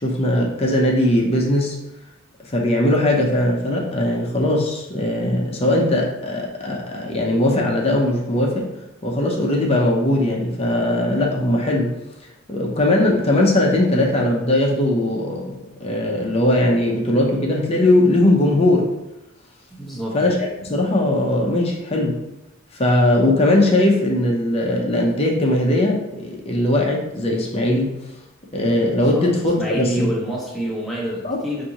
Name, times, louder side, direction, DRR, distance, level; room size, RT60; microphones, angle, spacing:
voice 1, 0.0-1.8 2.5-8.7 9.0-11.9 12.5-18.9 20.1-22.2 22.7-27.9 28.5-30.1 31.2-31.4, left 1 dB, 30° left, -1 dB, 0.6 m, -19 dB
voice 2, 19.7-20.2 29.1-29.2 29.6-31.6, right 1 dB, ahead, -5 dB, 0.8 m, -27 dB
6.0 x 2.6 x 2.9 m, 0.94 s
head